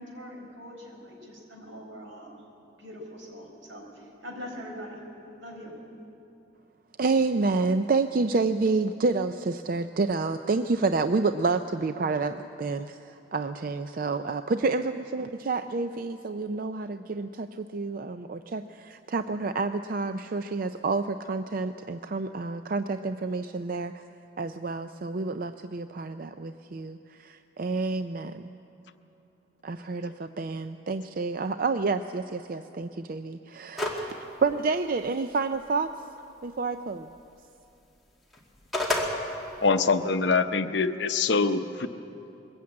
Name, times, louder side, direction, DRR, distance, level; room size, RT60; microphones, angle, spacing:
voice 1, 0.0-2.4 2.8-3.8 4.2-5.0 5.4-5.7, equal, 85° right, 0 dB, 4.5 m, -42 dB
voice 2, 7.0-24.0 24.4-28.5 29.6-35.9 36.4-37.1, right 3 dB, 45° right, 9 dB, 0.4 m, -29 dB
sound 1, 33.8-34.1 34.5-34.6 38.3-39.1, left 1 dB, ahead, 2.1 m, -27 dB
voice 3, 39.6-41.9, left 4 dB, 65° left, 9 dB, 0.8 m, -24 dB
22.0 x 14.5 x 8.6 m, 2.8 s
head